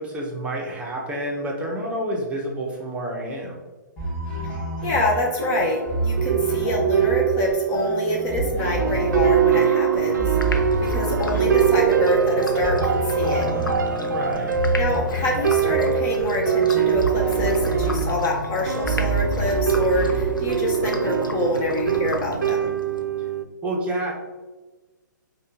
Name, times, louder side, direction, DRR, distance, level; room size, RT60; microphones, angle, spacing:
voice 1, 0.0-3.6 14.0-14.6 23.6-24.1, right 1 dB, 10° right, -2 dB, 0.8 m, -29 dB
sound 1, 4.0-21.2, right 2 dB, 10° left, 1.3 m, -29 dB
voice 2, 4.8-13.5 14.8-22.7, left 1 dB, 25° left, -1 dB, 0.6 m, -26 dB
sound 2, 5.4-23.4, right 8 dB, 65° right, 0.4 m, -23 dB
sound 3, 10.3-23.0, left 2 dB, 85° left, 0.6 m, -35 dB
5.3 x 2.3 x 3.7 m, 1.2 s
figure-of-eight pair, 125°, 11 cm